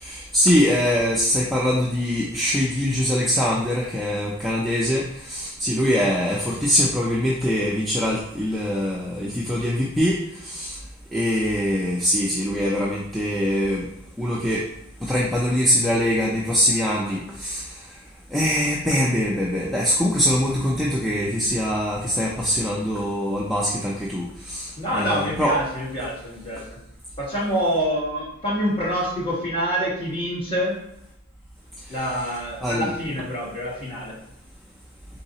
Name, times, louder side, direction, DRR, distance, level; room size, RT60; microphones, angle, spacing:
voice 1, 0.0-5.0 5.3-10.2 10.4-10.8 11.1-13.9 14.2-14.6 15.1-17.6 18.3-25.5 32.6-32.9, equal, ahead, -5 dB, 0.3 m, -23 dB
voice 2, 24.8-26.8 27.2-30.8 31.9-34.2, equal, 25° left, -7 dB, 1.3 m, -26 dB
3.9 x 3.9 x 2.8 m, 0.82 s
head